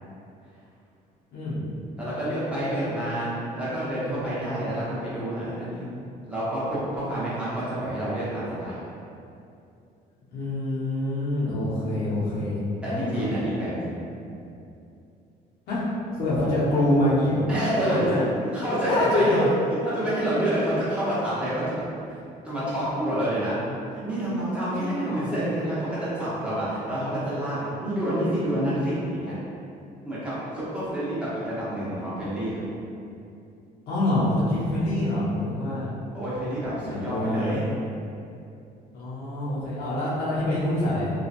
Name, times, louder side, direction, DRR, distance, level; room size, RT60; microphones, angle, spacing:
voice 1, 1.3-1.6 2.9-3.0 10.3-13.3 15.7-15.9 16.1-17.5 18.0-18.2 18.5-18.6 18.9-19.5 24.8-25.3 33.9-35.9 36.8-37.6 38.9-41.1, left 1 dB, 80° left, -9 dB, 0.9 m, -25 dB
voice 2, 2.0-3.3 3.5-5.9 6.3-8.9 12.8-14.1 17.5-18.2 18.5-19.5 19.9-21.8 22.4-23.6 23.9-29.3 30.0-32.6 36.1-37.6, right 1 dB, 5° right, -11 dB, 0.8 m, -28 dB
2.8 x 2.4 x 2.5 m, 2.6 s
cardioid pair, 110°, 17 cm